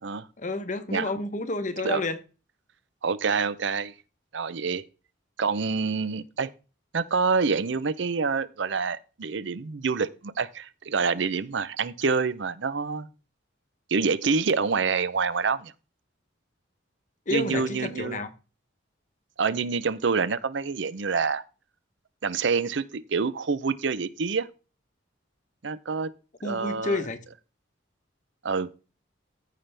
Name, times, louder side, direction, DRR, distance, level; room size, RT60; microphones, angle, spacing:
voice 1, 0.4-2.2 17.3-18.3 26.4-27.2, left 2 dB, 40° left, 0.9 m, -30 dB
voice 2, 3.0-3.9 4.3-4.8 5.4-6.5 6.9-13.1 13.9-15.7 17.3-18.2 19.4-21.4 22.2-24.5 25.6-26.1 26.4-27.0 28.4-28.7, right 5 dB, 65° right, 0.6 m, -27 dB
14.0 x 5.7 x 3.4 m
head